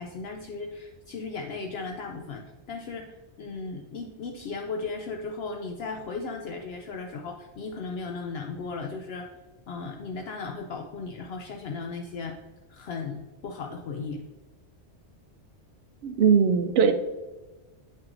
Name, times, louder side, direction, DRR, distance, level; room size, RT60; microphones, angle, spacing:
voice 1, 0.0-9.3 9.7-12.4 12.7-14.2, left 4 dB, 65° left, 3 dB, 0.8 m, -36 dB
voice 2, 16.0-16.9, right 6 dB, 65° right, 8 dB, 0.8 m, -20 dB
8.8 x 5.8 x 2.5 m, 1.2 s
omnidirectional pair, 1.2 m